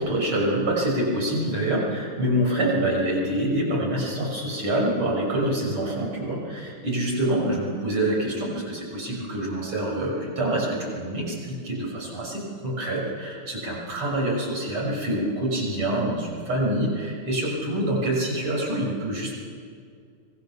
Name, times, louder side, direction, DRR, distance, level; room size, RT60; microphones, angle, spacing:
voice 1, 0.0-19.3, right 1 dB, 85° right, -2 dB, 7.0 m, -26 dB
25.0 x 21.0 x 7.0 m, 2.2 s
omnidirectional pair, 2.4 m